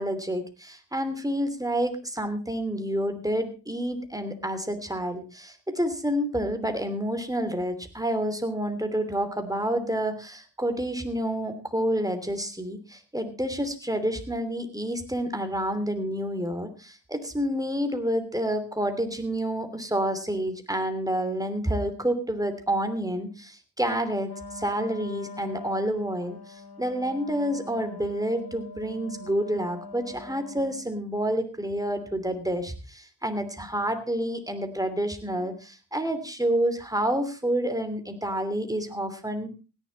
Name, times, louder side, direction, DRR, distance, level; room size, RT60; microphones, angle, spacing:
voice 1, 0.0-39.5, right 1 dB, 10° right, 8 dB, 2.9 m, -29 dB
Wind instrument woodwind instrument, 24.2-30.9, left 1 dB, 65° left, 2.5 m, -42 dB
16.5 x 11.0 x 4.1 m, 0.32 s
cardioid pair, 45°, 41 cm